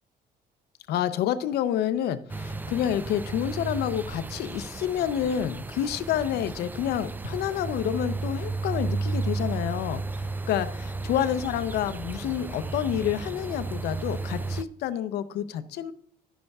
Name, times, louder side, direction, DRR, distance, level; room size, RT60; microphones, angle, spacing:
voice 1, 0.9-10.0 10.5-10.7 11.0-15.9, left 10 dB, 75° left, 12 dB, 0.6 m, -28 dB
sound 1, 2.3-14.6, right 3 dB, 10° right, 0.3 m, -33 dB
11.0 x 7.8 x 2.3 m, 0.69 s
cardioid pair, 110°, 17 cm